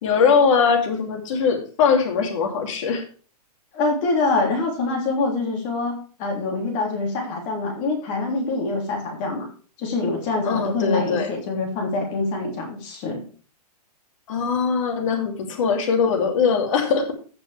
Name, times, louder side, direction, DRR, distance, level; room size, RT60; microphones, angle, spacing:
voice 1, 0.0-3.0 10.4-11.3 14.3-17.1, left 6 dB, 50° left, 3 dB, 2.9 m, -21 dB
voice 2, 3.7-9.5 9.8-13.2, left 3 dB, 35° left, 1 dB, 3.2 m, -25 dB
15.5 x 6.0 x 3.4 m, 0.38 s
hypercardioid pair, 155°, 20 cm